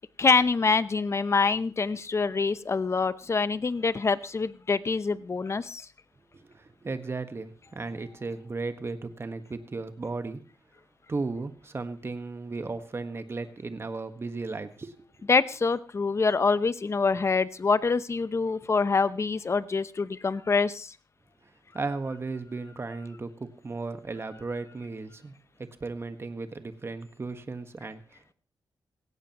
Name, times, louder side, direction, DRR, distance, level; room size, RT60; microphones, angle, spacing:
voice 1, 0.2-5.9 15.3-20.9, left 4 dB, 35° left, 16 dB, 0.7 m, -25 dB
voice 2, 6.3-10.4 11.1-14.9 21.7-25.3 25.8-28.3, right 3 dB, 35° right, 9 dB, 1.5 m, -35 dB
17.5 x 16.5 x 3.0 m, 0.33 s
wide cardioid pair, 100°, 8 cm